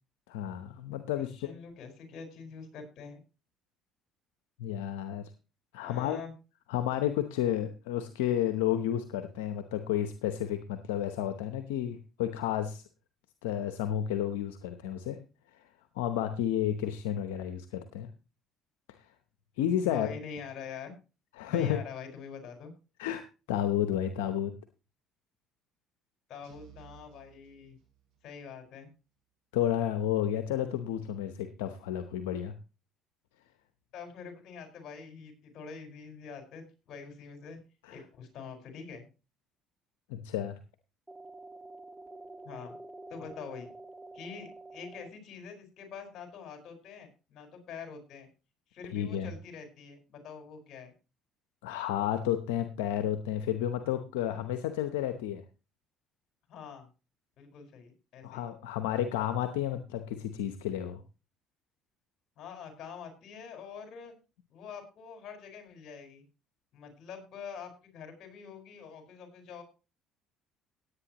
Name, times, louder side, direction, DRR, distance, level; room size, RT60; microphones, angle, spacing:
voice 1, 0.3-1.3 4.6-5.3 5.7-6.2 6.7-12.8 13.4-15.2 16.0-18.1 19.6-20.1 21.4-21.8 23.0-23.2 23.5-24.5 29.5-32.5 37.9-38.0 40.1-40.6 48.9-49.3 51.6-55.4 58.2-61.0, left 11 dB, 90° left, 9 dB, 0.8 m, -31 dB
voice 2, 1.1-3.2 5.8-6.3 19.8-20.9 21.5-22.7 26.3-27.8 28.2-28.9 33.9-37.6 37.9-39.0 42.4-42.7 43.1-43.7 44.1-48.3 48.7-50.9 56.5-56.9 57.4-58.5 62.4-64.1 64.5-66.2 66.7-69.6, left 6 dB, 65° left, 6 dB, 4.8 m, -45 dB
sound 1, 26.4-28.3, right 11 dB, 75° right, 6.0 m, -57 dB
sound 2, 41.1-45.1, right 2 dB, 10° right, 1.6 m, -48 dB
17.5 x 8.7 x 3.0 m, 0.31 s
supercardioid pair, 75°, 0 cm